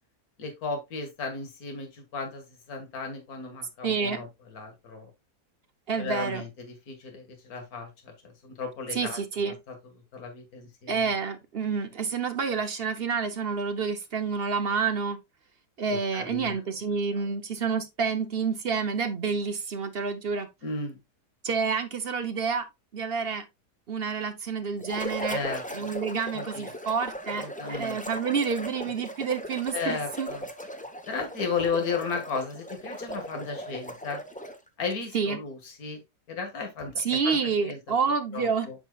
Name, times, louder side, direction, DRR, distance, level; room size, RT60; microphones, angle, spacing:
voice 1, 0.4-5.1 6.0-8.1 8.4-9.2 9.7-9.8 10.1-11.1 12.5-12.6 15.9-16.6 20.6-21.0 25.3-25.9 26.3-26.7 27.4-28.0 29.7-30.5 31.1-34.2 34.8-36.0 36.3-38.0 38.3-38.7, left 4 dB, 60° left, 2.2 m, -35 dB
voice 2, 3.8-4.2 5.9-6.4 8.9-9.5 10.9-15.2 15.8-20.5 21.4-22.6 22.9-23.4 23.9-25.4 25.7-30.3 35.1-35.4 37.0-38.7, right 5 dB, 45° right, 0.8 m, -28 dB
sound 1, 24.8-34.7, equal, 10° left, 0.3 m, -38 dB
8.3 x 6.0 x 2.3 m
omnidirectional pair, 1.8 m